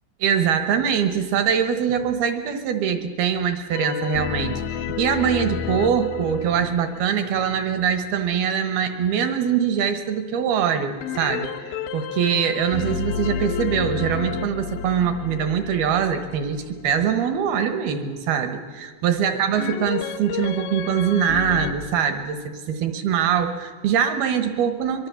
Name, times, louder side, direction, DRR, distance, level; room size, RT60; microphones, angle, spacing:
voice 1, 0.2-25.1, right 8 dB, 75° right, 9 dB, 2.4 m, -23 dB
sound 1, 3.7-8.3 11.0-17.0 19.6-21.7, left 8 dB, 75° left, 2.8 m, -31 dB
23.5 x 23.5 x 7.0 m, 1.5 s
omnidirectional pair, 5.6 m